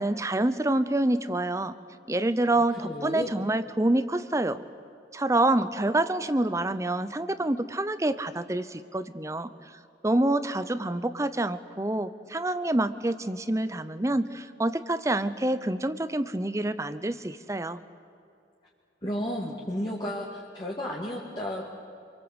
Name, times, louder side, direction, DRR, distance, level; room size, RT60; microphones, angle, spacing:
voice 1, 0.0-1.7 2.1-4.6 5.1-9.5 10.0-17.8, right 1 dB, 15° right, 13 dB, 0.7 m, -27 dB
voice 2, 2.5-3.3 19.0-21.6, equal, 25° left, -4 dB, 2.3 m, -33 dB
28.0 x 23.5 x 8.1 m, 2.5 s
head